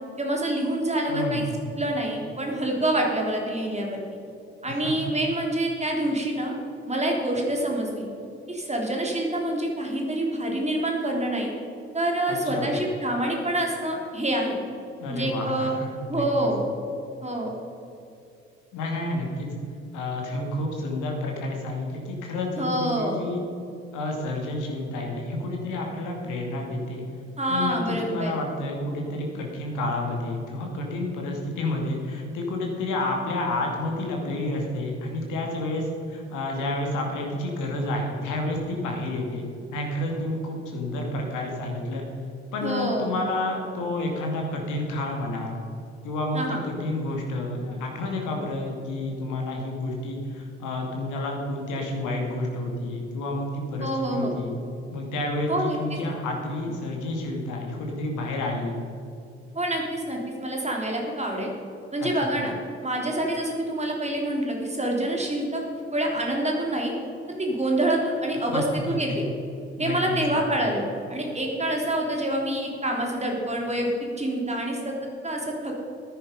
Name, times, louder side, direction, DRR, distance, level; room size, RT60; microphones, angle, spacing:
voice 1, 0.2-1.5 1.8-4.0 4.6-6.5 6.9-8.1 8.5-11.5 11.9-14.6 15.1-15.7 16.1-16.6 17.2-17.5 22.6-23.2 27.4-28.3 42.6-43.1 46.3-46.6 53.8-54.3 55.5-56.0 59.5-61.5 61.9-62.5 62.8-65.6 65.9-66.9 67.4-69.3 69.8-74.9 75.2-75.7, right 1 dB, 20° right, 0 dB, 3.5 m, -26 dB
voice 2, 1.1-1.5 4.7-5.1 12.3-12.7 15.0-16.5 18.7-19.5 19.9-23.4 23.9-27.0 27.5-39.4 39.7-42.0 42.5-45.6 46.0-54.5 54.9-58.8 62.0-62.1 68.5-69.2 69.8-70.5, left 2 dB, 60° left, 0 dB, 2.5 m, -30 dB
14.5 x 10.0 x 5.2 m, 2.7 s
figure-of-eight pair, 40°, 34 cm